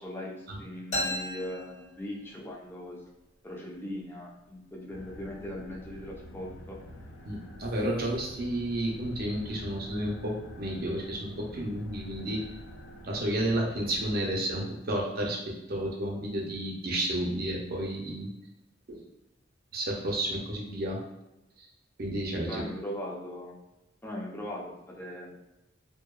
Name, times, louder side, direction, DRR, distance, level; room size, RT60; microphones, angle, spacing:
voice 1, 0.0-3.0 3.4-6.8 22.5-23.5 24.0-25.3, left 1 dB, 10° left, -2 dB, 0.4 m, -39 dB
sound 1, 0.9-2.6, left 1 dB, 40° left, 0.8 m, -35 dB
sound 2, 4.9-14.2, equal, 70° left, 0.4 m, -48 dB
voice 2, 7.2-12.4 13.0-18.3 18.9-19.0 19.7-21.0 21.6-21.7 22.0-22.6, right 1 dB, 50° right, -1 dB, 0.6 m, -31 dB
2.7 x 2.1 x 2.2 m, 0.94 s
head